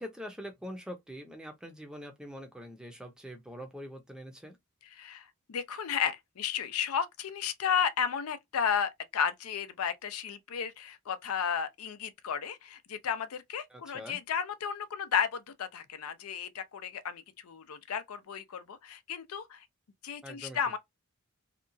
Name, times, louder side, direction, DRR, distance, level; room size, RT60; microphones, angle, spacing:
voice 1, 0.0-4.6 13.7-14.2 20.2-20.6, equal, 5° right, 0.5 m, -44 dB
voice 2, 5.5-19.6 20.0-20.8, left 7 dB, 85° left, 0.5 m, -33 dB
2.8 x 2.2 x 2.5 m
head